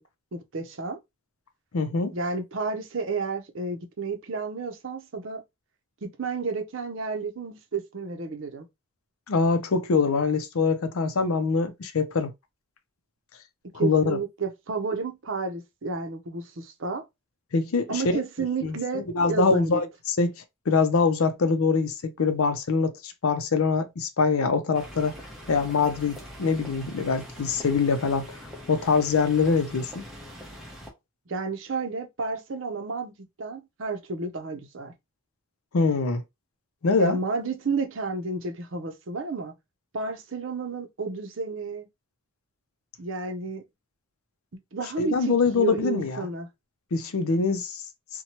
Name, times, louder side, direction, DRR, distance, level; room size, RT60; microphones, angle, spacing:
voice 1, 0.3-1.0 2.1-5.4 6.0-8.7 13.8-17.0 17.9-19.8 31.3-34.9 37.0-39.5 39.9-41.9 43.0-43.6 44.7-46.5, right 4 dB, 60° right, 0.6 m, -31 dB
voice 2, 1.7-2.1 9.3-12.3 13.7-14.2 17.5-18.2 18.6-20.3 20.7-25.1 25.5-28.3 28.7-30.0 35.7-36.2 36.8-37.2 45.0-46.3 46.9-47.8, left 4 dB, 80° left, 0.5 m, -24 dB
sound 1, 24.7-30.9, equal, ahead, 0.7 m, -43 dB
2.8 x 2.2 x 2.9 m
head